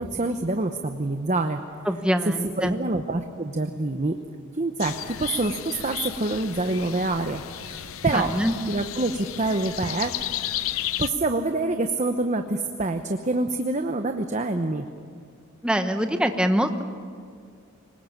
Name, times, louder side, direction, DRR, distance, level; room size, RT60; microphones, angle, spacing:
voice 1, 0.0-1.6 2.3-4.2 4.5-8.3 8.7-10.1 11.0-14.9, right 2 dB, 35° right, 6 dB, 0.9 m, -26 dB
voice 2, 1.9-2.8 8.1-8.5 15.6-16.8, equal, 5° right, 7 dB, 1.0 m, -24 dB
sound 1, 4.8-11.1, left 12 dB, 70° left, 0.6 m, -33 dB
23.5 x 20.5 x 7.3 m, 2.2 s
head